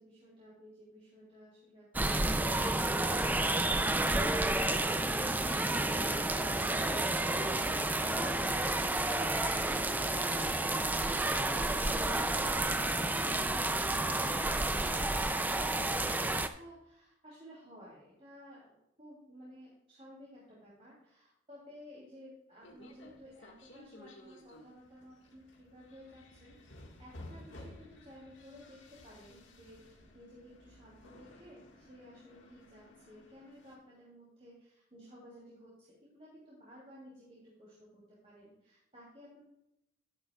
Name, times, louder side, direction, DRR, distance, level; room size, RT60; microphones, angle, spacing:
voice 1, 0.0-5.5 11.8-26.7 27.0-39.5, equal, 30° right, -6 dB, 2.8 m, -55 dB
sound 1, 1.9-16.5, right 2 dB, 10° right, 0.3 m, -30 dB
sound 2, 22.6-33.8, left 1 dB, 70° left, 1.7 m, -55 dB
11.5 x 10.5 x 2.4 m, 0.83 s
head